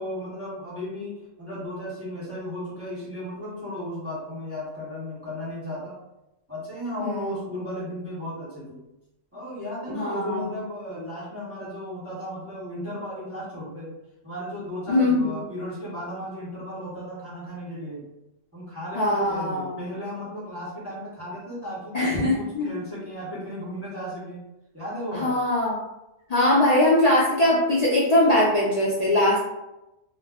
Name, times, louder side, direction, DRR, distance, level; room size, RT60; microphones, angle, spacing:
voice 1, 0.0-5.9 6.5-8.8 9.3-13.9 14.2-18.1 18.5-24.4 24.7-25.4, left 1 dB, 15° right, -8 dB, 0.6 m, -35 dB
voice 2, 7.0-7.4 9.9-10.4 14.9-15.3 18.9-19.7 21.9-22.7 25.1-25.8 26.3-29.4, left 1 dB, 50° left, -6 dB, 0.5 m, -21 dB
2.3 x 2.1 x 3.4 m, 0.93 s
omnidirectional pair, 1.4 m